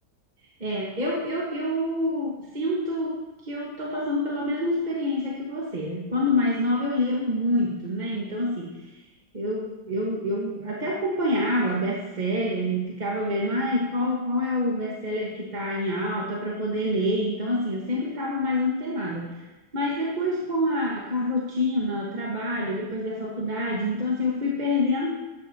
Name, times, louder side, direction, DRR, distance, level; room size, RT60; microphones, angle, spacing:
voice 1, 0.6-9.0 9.3-19.3 19.7-25.1, left 1 dB, 30° right, -4 dB, 1.5 m, -27 dB
14.5 x 12.0 x 2.9 m, 1.1 s
omnidirectional pair, 1.8 m